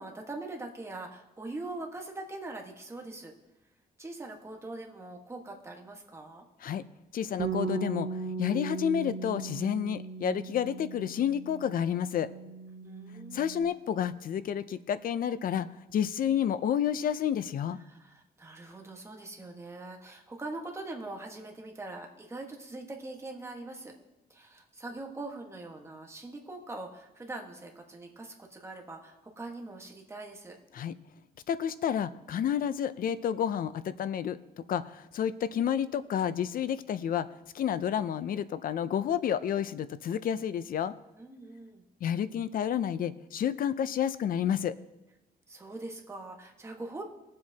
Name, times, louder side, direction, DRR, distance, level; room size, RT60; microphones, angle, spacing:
voice 1, 0.0-3.3 4.0-6.4 12.8-13.5 17.8-23.9 24.3-30.6 41.1-41.8 45.5-47.0, right 2 dB, 15° right, 1 dB, 1.4 m, -42 dB
voice 2, 7.1-8.1 8.4-12.3 13.3-17.8 30.7-30.9 31.5-37.3 37.5-40.9 42.0-44.7, left 9 dB, 60° left, 14 dB, 0.5 m, -30 dB
Bass guitar, 7.4-13.6, right 4 dB, 65° right, 1.0 m, -37 dB
20.5 x 7.6 x 2.8 m, 0.98 s
wide cardioid pair, 150°, 16 cm